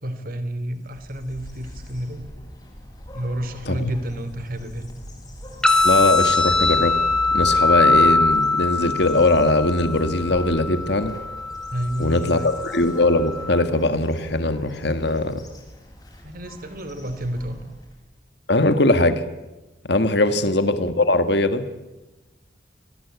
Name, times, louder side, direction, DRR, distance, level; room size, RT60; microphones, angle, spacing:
voice 1, 0.0-2.3 3.1-4.9 11.7-12.5 16.2-17.6 20.3-20.5, equal, 50° right, 11 dB, 3.1 m, -30 dB
sound 1, 0.8-18.1, equal, 20° left, 7.6 m, -41 dB
sound 2, 5.6-13.6, left 3 dB, 5° left, 3.0 m, -22 dB
voice 2, 5.8-7.0 7.3-11.1 12.0-15.4 18.5-19.2 19.8-21.6, left 2 dB, 65° left, 9 dB, 1.9 m, -20 dB
28.5 x 21.5 x 8.4 m, 1.1 s
head